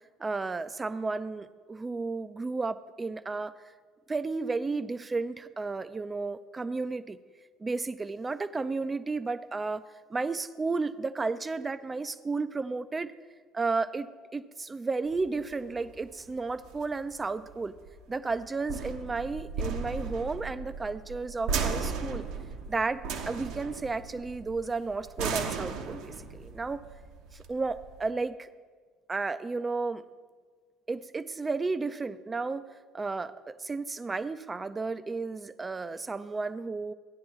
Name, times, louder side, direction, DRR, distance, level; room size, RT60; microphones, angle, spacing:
voice 1, 0.2-3.5 4.1-7.2 7.6-9.8 10.1-13.1 13.5-17.8 18.1-22.2 22.7-26.8 27.3-28.5 29.1-30.0 30.9-32.7 32.9-36.9, right 3 dB, 25° right, 14 dB, 0.5 m, -33 dB
sound 1, 15.1-28.1, right 5 dB, 70° right, 1.0 m, -36 dB
14.0 x 10.0 x 3.1 m, 1.5 s
hypercardioid pair, 60°, 0 cm